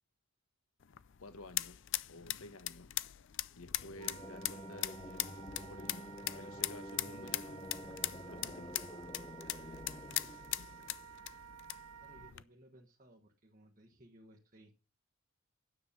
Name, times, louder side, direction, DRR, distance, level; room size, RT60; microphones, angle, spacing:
sound 1, 0.8-12.4, left 15 dB, 55° left, 0.5 m, -41 dB
voice 1, 1.2-2.9 3.6-8.7, left 2 dB, 75° left, 1.2 m, -53 dB
sound 2, 3.7-11.3, left 1 dB, 20° left, 0.7 m, -49 dB
Wind instrument woodwind instrument, 4.0-12.3, right 8 dB, 85° right, 0.8 m, -53 dB
voice 2, 12.0-14.7, right 1 dB, 35° right, 1.3 m, -60 dB
9.7 x 7.4 x 6.9 m
head